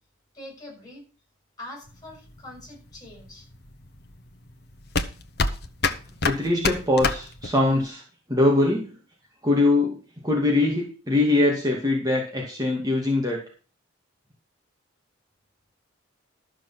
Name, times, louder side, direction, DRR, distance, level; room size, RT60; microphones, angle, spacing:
voice 1, 0.3-1.0 1.6-3.5, left 1 dB, 20° left, 0 dB, 6.6 m, -43 dB
sound 1, 1.9-7.9, left 4 dB, 50° left, 1.1 m, -28 dB
voice 2, 6.2-8.0 8.3-9.0 9.4-9.9 10.2-13.4, left 2 dB, 20° right, -2 dB, 2.4 m, -22 dB
12.5 x 6.7 x 5.9 m, 0.37 s
head